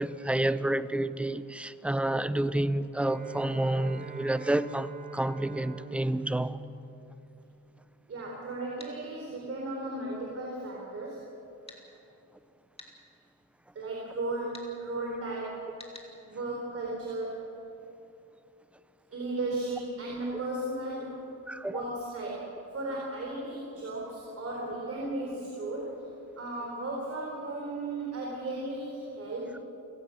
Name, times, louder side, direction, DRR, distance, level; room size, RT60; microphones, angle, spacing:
voice 1, 0.0-6.6 21.5-21.8, right 1 dB, 5° right, 14 dB, 0.6 m, -29 dB
Bowed string instrument, 3.0-7.7, right 4 dB, 60° right, 2.1 m, -44 dB
voice 2, 8.1-11.3 13.7-15.8 16.2-17.4 19.1-21.2 21.7-26.1 26.4-29.6, right 2 dB, 40° right, -2 dB, 4.3 m, -35 dB
sound 1, 8.8-9.0 11.7-11.8 12.8-12.9 14.5-14.7 15.8-16.1, left 2 dB, 15° left, 2.8 m, -48 dB
29.5 x 17.5 x 6.3 m, 2.8 s
cardioid pair, 125°, 35 cm